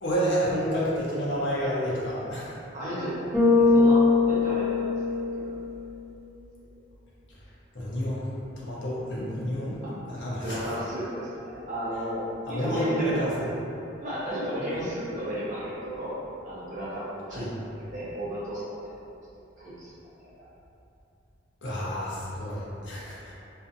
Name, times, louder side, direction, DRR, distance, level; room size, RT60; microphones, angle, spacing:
voice 1, 0.0-2.6 7.7-8.3 8.6-9.8 10.1-10.6 12.5-13.5 17.3-17.5 21.6-23.3, equal, 65° left, -7 dB, 0.6 m, -29 dB
voice 2, 2.7-5.5 10.4-13.4 14.0-16.1 16.4-17.6 17.9-18.9 19.6-19.9, equal, 40° right, -10 dB, 0.6 m, -33 dB
Bass guitar, 3.3-5.7, left 3 dB, 10° left, 0.5 m, -21 dB
2.4 x 2.4 x 2.5 m, 2.8 s
head